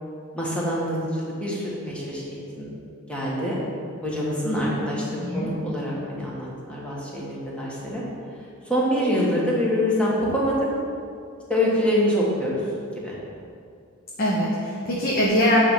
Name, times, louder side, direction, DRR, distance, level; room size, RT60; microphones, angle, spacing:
voice 1, 0.3-2.7 3.1-3.6 4.0-8.0 8.6-10.6 11.5-12.6 13.0-13.1, equal, 5° left, -5 dB, 1.3 m, -25 dB
voice 2, 4.4-4.8 5.2-5.5 14.2-15.6, equal, 45° left, -5 dB, 0.8 m, -23 dB
8.8 x 3.4 x 5.7 m, 2.4 s
head